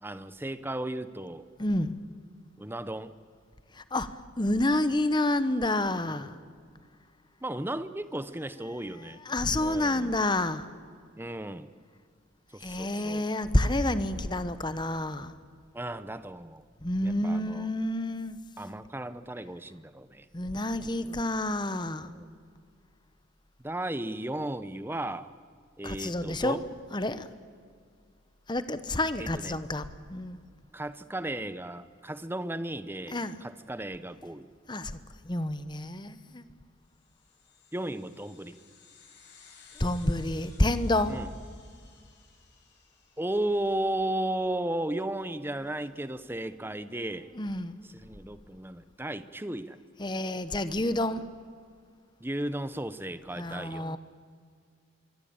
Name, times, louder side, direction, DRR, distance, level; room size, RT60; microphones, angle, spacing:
voice 1, 0.0-1.5 2.6-3.1 6.1-6.4 7.4-9.2 9.6-10.1 11.2-11.7 12.5-13.3 15.7-16.6 17.0-17.7 18.6-20.3 22.0-22.3 23.6-25.3 25.8-26.7 29.2-29.6 30.7-34.5 37.7-38.5 41.1-41.3 43.2-47.3 47.8-49.8 52.2-54.0, right 1 dB, 10° right, 0.8 m, -35 dB
voice 2, 1.6-2.0 3.9-4.1 4.4-6.4 9.2-10.7 12.6-15.3 16.8-18.4 20.3-22.1 25.8-26.6 26.9-27.3 28.5-30.4 33.1-33.4 34.7-34.9 35.2-36.4 39.8-41.2 47.4-47.9 50.0-51.3 53.4-54.0, left 1 dB, 20° left, 1.0 m, -29 dB
sound 1, 36.9-43.8, left 6 dB, 55° left, 5.8 m, -58 dB
25.5 x 23.0 x 8.8 m
head